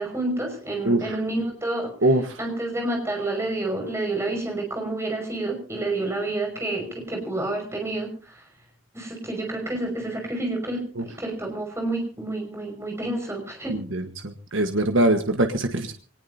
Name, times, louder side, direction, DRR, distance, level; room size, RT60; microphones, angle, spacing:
voice 1, 0.0-2.1 2.4-8.5 8.9-10.8 11.2-13.8, right 2 dB, 15° right, 2 dB, 5.6 m, -29 dB
voice 2, 13.7-14.0 14.5-15.9, right 1 dB, 70° right, 6 dB, 1.4 m, -21 dB
24.0 x 19.5 x 2.8 m, 0.38 s
head